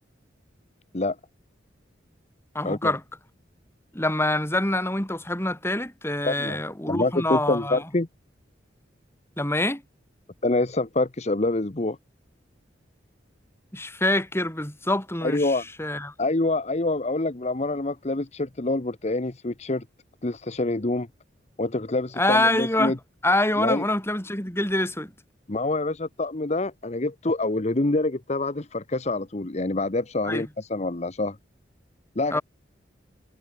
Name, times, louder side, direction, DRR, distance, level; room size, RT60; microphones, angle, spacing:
voice 1, 2.5-3.0 3.9-7.8 9.4-9.8 13.7-16.1 22.2-23.0 23.2-25.1 30.3-30.4 32.3-32.4, left 1 dB, 15° left, 6.2 m, -25 dB
voice 2, 6.2-6.6 6.9-8.1 10.4-12.0 15.2-15.6 16.2-19.8 20.2-21.1 21.6-23.0 23.6-23.8 25.5-31.4 32.2-32.4, left 2 dB, 35° left, 1.0 m, -26 dB
head